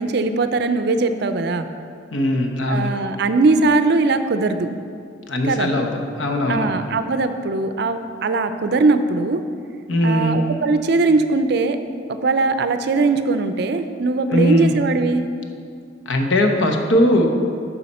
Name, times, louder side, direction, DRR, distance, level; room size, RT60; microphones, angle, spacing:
voice 1, 0.0-1.7 2.7-4.7 5.4-5.7 6.5-9.4 10.0-11.8 12.1-15.3, right 3 dB, 60° right, 9 dB, 0.4 m, -20 dB
voice 2, 2.1-2.9 5.3-5.9 6.2-6.7 9.9-10.4 14.3-14.7 16.1-17.3, left 1 dB, 90° left, 3 dB, 0.9 m, -19 dB
9.7 x 5.6 x 4.2 m, 2.3 s
head